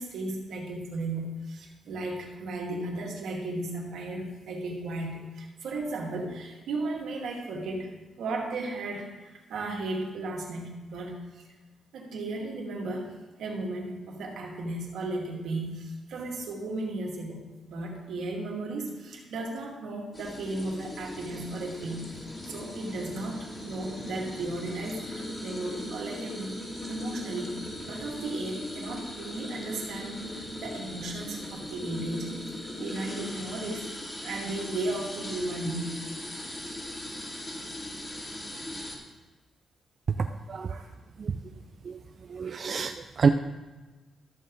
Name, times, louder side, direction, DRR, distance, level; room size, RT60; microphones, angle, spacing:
voice 1, 0.0-11.5 11.9-35.9 40.7-40.9, right 2 dB, 80° right, -1 dB, 2.2 m, -35 dB
sound 1, 20.1-39.0, left 1 dB, 20° left, 2.5 m, -39 dB
voice 2, 40.1-40.8 41.2-41.4 41.8-42.0 42.3-43.3, right 5 dB, 50° right, 6 dB, 0.4 m, -27 dB
13.5 x 6.7 x 3.9 m, 1.2 s
cardioid pair, 105°, 0 cm